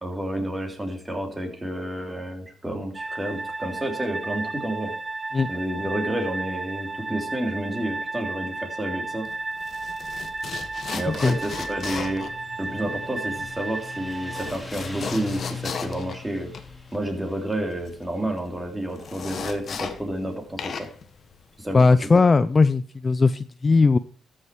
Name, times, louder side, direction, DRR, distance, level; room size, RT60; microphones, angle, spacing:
voice 1, 0.0-4.9 5.5-9.3 10.9-12.3 12.6-16.5 16.9-20.9 21.6-21.8 22.1-22.2, right 1 dB, 10° right, 3 dB, 3.1 m, -30 dB
sound 1, 2.9-14.5, right 3 dB, 30° right, 1.2 m, -33 dB
sound 2, 9.3-20.3 20.6-22.1, left 6 dB, 55° left, 1.4 m, -37 dB
Motorcycle, 11.6-22.6, left 4 dB, 10° left, 2.5 m, -42 dB
voice 2, 21.7-24.0, left 4 dB, 30° left, 14 dB, 0.4 m, -18 dB
13.5 x 6.4 x 4.6 m, 0.41 s
cardioid pair, 90°, 0 cm